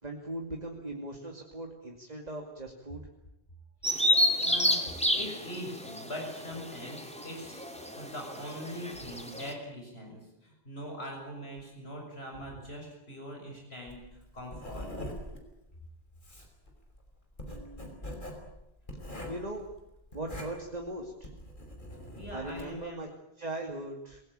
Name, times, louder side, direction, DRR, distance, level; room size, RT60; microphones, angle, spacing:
voice 1, 0.0-3.0 17.5-18.0 19.3-19.7 20.1-21.3 22.3-23.1 23.4-24.2, right 2 dB, 40° right, 2 dB, 2.5 m, -39 dB
Bird vocalization bird call bird song, 3.8-9.5, left 1 dB, 5° left, 3.0 m, -30 dB
voice 2, 4.4-4.8 5.1-7.6 8.0-14.0 14.3-14.9 22.2-23.0, equal, 75° left, 0 dB, 6.8 m, -42 dB
Writing, 13.9-22.8, left 1 dB, 50° left, 5.3 m, -43 dB
27.0 x 19.0 x 8.9 m, 0.89 s
omnidirectional pair, 1.1 m